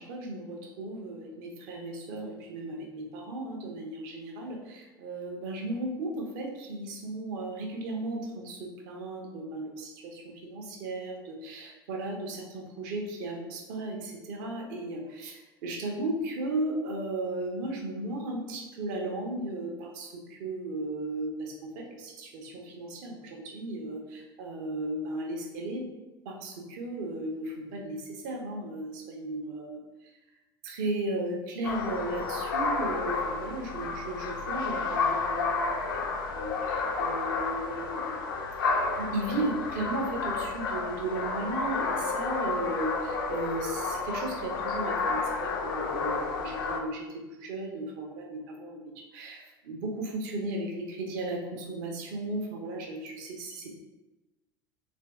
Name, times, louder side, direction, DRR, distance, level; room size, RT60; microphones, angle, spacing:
voice 1, 0.0-25.8 26.3-29.8 30.6-35.8 36.1-38.2 38.6-53.7, right 2 dB, 55° right, 1 dB, 0.6 m, -35 dB
sound 1, 31.6-46.8, left 4 dB, 70° left, 0.4 m, -31 dB
3.2 x 2.5 x 2.3 m, 1.1 s
figure-of-eight pair, 70°, 12 cm